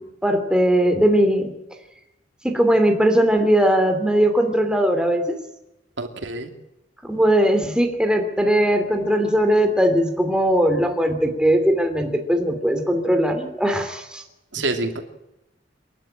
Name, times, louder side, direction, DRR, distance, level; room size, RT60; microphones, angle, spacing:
voice 1, 0.2-1.5 2.4-5.4 7.0-14.2, equal, 5° right, 5 dB, 2.8 m, -19 dB
voice 2, 6.0-6.5 14.5-15.0, right 2 dB, 85° right, 6 dB, 2.7 m, -26 dB
28.5 x 11.5 x 8.9 m, 0.92 s
head